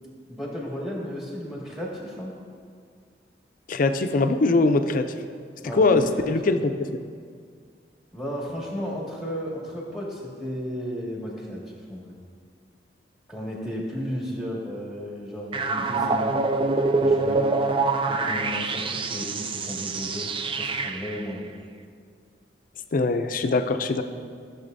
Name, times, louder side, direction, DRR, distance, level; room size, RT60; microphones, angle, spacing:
voice 1, 0.3-2.4 5.6-6.5 8.1-11.6 11.9-12.1 13.3-16.3 17.0-17.5 18.1-20.3 20.6-21.6, equal, ahead, -4 dB, 1.9 m, -34 dB
voice 2, 3.7-5.1 5.7-6.6 22.9-24.0, left 3 dB, 50° left, 8 dB, 0.5 m, -21 dB
sound 1, 15.5-21.2, right 3 dB, 30° right, 0.4 m, -25 dB
14.5 x 6.9 x 2.7 m, 2.1 s
head